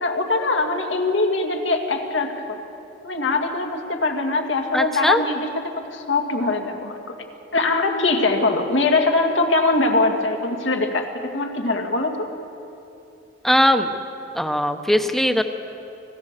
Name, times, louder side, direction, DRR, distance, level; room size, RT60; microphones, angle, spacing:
voice 1, 0.0-2.6 3.0-5.5 5.9-7.2 7.5-12.3, left 3 dB, 90° left, 3 dB, 2.2 m, -22 dB
voice 2, 4.7-5.2 13.4-13.9 14.3-15.4, equal, ahead, 7 dB, 0.8 m, -19 dB
26.0 x 16.0 x 6.7 m, 2.8 s
head